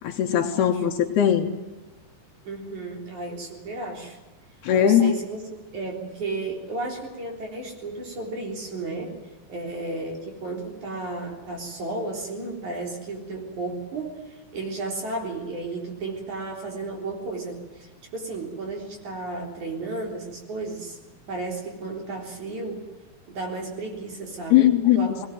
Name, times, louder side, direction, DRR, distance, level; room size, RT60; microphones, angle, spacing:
voice 1, 0.0-1.5 4.6-5.1 24.5-25.3, left 10 dB, 70° left, 5 dB, 3.2 m, -20 dB
voice 2, 2.4-4.2 4.7-5.4 5.7-9.2 9.5-21.0 21.3-22.9 23.3-25.3, right 3 dB, 45° right, 2 dB, 4.8 m, -33 dB
20.5 x 19.5 x 9.2 m, 1.2 s
omnidirectional pair, 5.1 m